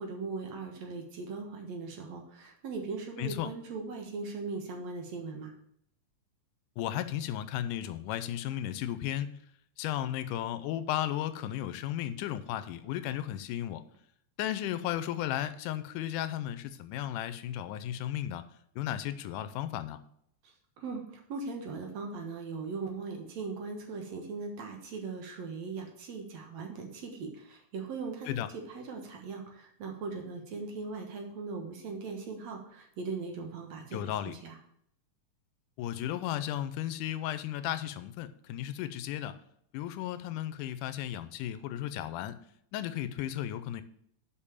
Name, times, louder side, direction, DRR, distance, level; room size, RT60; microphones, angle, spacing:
voice 1, 0.0-5.5 20.8-28.3 28.7-34.0 34.4-34.6, right 4 dB, 60° right, 2 dB, 2.3 m, -39 dB
voice 2, 3.2-3.5 6.8-9.4 9.8-13.8 14.4-18.4 18.8-20.0 28.3-28.5 33.9-34.4 35.8-39.4 39.7-42.4 42.7-43.8, left 12 dB, 90° left, 12 dB, 2.2 m, -34 dB
6.7 x 5.4 x 7.1 m, 0.70 s
omnidirectional pair, 3.6 m